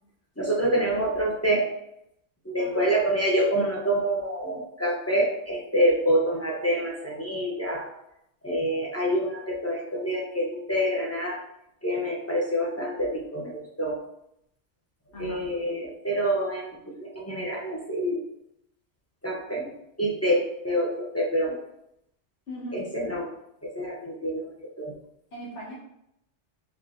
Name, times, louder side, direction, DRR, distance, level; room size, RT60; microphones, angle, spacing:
voice 1, 0.4-1.7 2.4-7.9 8.4-11.4 11.8-14.0 15.2-18.2 19.2-19.7 20.0-21.5 22.7-23.3 23.6-24.9, right 1 dB, 15° left, -3 dB, 0.7 m, -27 dB
voice 2, 15.1-15.4 22.5-22.8 25.3-25.7, equal, 65° left, -5 dB, 1.7 m, -38 dB
4.5 x 3.8 x 2.5 m, 0.79 s
omnidirectional pair, 1.3 m